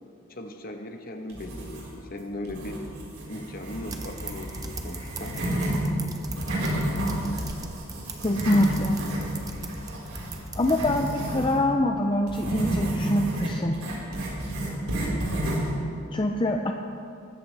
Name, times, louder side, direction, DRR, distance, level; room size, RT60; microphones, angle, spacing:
voice 1, 0.3-2.8 3.3-5.4, left 1 dB, 45° left, 4 dB, 1.2 m, -38 dB
sound 1, 1.3-2.1 2.5-5.8 6.2-11.6 12.3-15.7, right 1 dB, 85° right, 4.4 m, -30 dB
sound 2, 3.8-11.4, right 2 dB, 15° right, 0.9 m, -40 dB
voice 2, 8.2-9.0 10.6-13.8 16.1-16.7, left 1 dB, 25° left, 3 dB, 0.5 m, -25 dB
22.0 x 13.5 x 3.4 m, 2.5 s
head